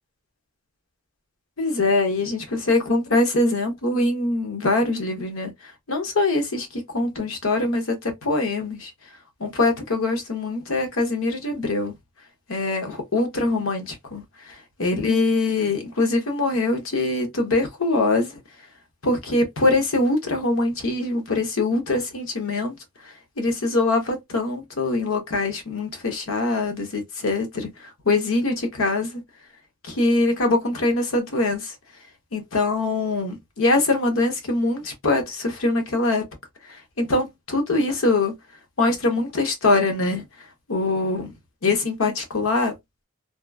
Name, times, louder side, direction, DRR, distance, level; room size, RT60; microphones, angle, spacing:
voice 1, 1.6-5.5 5.9-8.9 9.4-11.9 12.5-14.2 14.8-18.3 19.0-22.7 23.4-27.7 28.1-29.2 29.9-31.7 32.3-36.2 37.0-38.3 38.8-40.2 40.7-41.3 41.6-42.7, left 2 dB, 85° left, 0.9 m, -23 dB
2.9 x 2.3 x 2.2 m
head